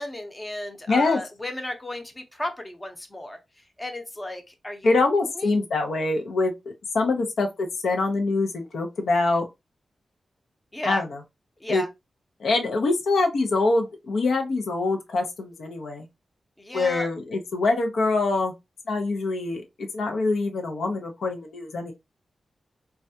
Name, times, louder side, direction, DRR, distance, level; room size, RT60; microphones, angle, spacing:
voice 1, 0.0-3.4 3.8-4.9 5.3-5.5 10.7-11.0 11.6-11.9 16.6-17.1, left 1 dB, 15° left, 0.6 m, -34 dB
voice 2, 0.9-1.2 4.8-6.5 6.9-9.4 10.8-11.2 11.7-11.8 12.4-16.1 16.7-18.5 18.9-21.9, left 3 dB, 85° left, 0.6 m, -24 dB
3.3 x 2.3 x 2.6 m
wide cardioid pair, 110°, 0 cm